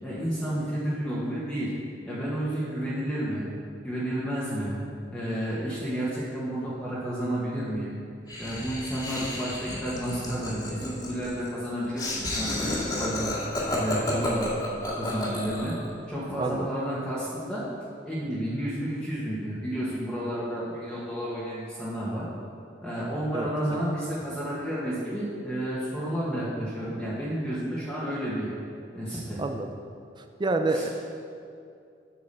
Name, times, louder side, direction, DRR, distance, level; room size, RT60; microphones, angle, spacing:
voice 1, 0.0-1.7 2.0-3.4 3.8-4.8 5.1-7.9 8.4-12.7 13.0-13.3 13.7-14.5 15.0-15.7 16.1-17.6 18.0-22.3 22.8-28.5 28.9-29.4 30.7-30.9, right 1 dB, 5° left, -9 dB, 1.5 m, -31 dB
Laughter, 8.3-15.9, left 1 dB, 25° left, 2.0 m, -31 dB
voice 2, 16.4-16.7 23.3-23.8 29.4-29.7 30.4-30.9, right 2 dB, 25° right, 6 dB, 0.5 m, -28 dB
8.6 x 6.1 x 6.8 m, 2.4 s
head